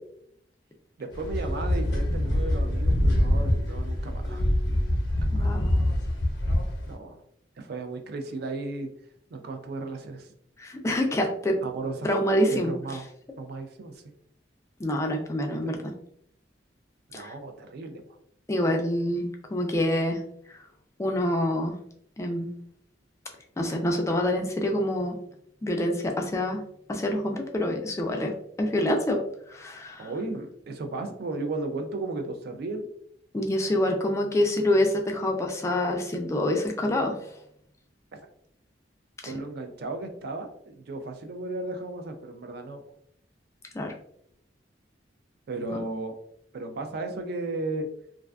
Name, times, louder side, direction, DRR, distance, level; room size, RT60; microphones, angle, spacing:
voice 1, 1.0-4.5 5.2-5.6 6.9-7.2 7.6-8.9 9.3-10.3 11.6-12.1 12.5-13.1 13.4-14.1 15.5-15.6 17.1-18.0 30.0-32.9 39.2-42.8 45.5-46.1 46.5-47.9, right 2 dB, 60° right, 6 dB, 0.4 m, -35 dB
sound 1, 1.1-6.9, left 1 dB, 90° left, 0.6 m, -25 dB
voice 2, 5.3-5.8 10.6-11.6 12.0-12.7 14.8-15.9 17.1-17.3 18.5-20.2 21.0-21.8 22.2-22.5 23.6-25.2 25.6-26.6 26.9-28.3 28.6-29.2 29.5-30.1 33.3-37.3 39.2-39.3 43.7-43.9 45.7-45.8, left 1 dB, 15° left, 2 dB, 0.3 m, -26 dB
2.4 x 2.3 x 2.2 m, 0.70 s
head